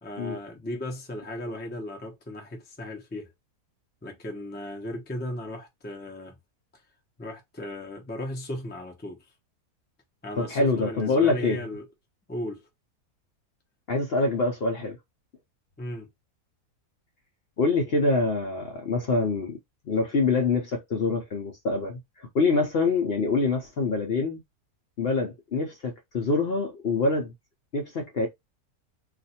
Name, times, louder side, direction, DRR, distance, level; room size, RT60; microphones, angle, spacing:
voice 1, 0.0-3.3 4.0-6.4 7.2-9.3 10.2-11.8 12.3-12.6 15.8-16.1, left 1 dB, 10° left, 0.5 m, -36 dB
voice 2, 10.4-11.6 13.9-15.0 17.6-19.6 19.9-24.4 25.0-27.3 27.7-28.3, left 3 dB, 55° left, 0.7 m, -25 dB
2.5 x 2.4 x 4.1 m
omnidirectional pair, 1.6 m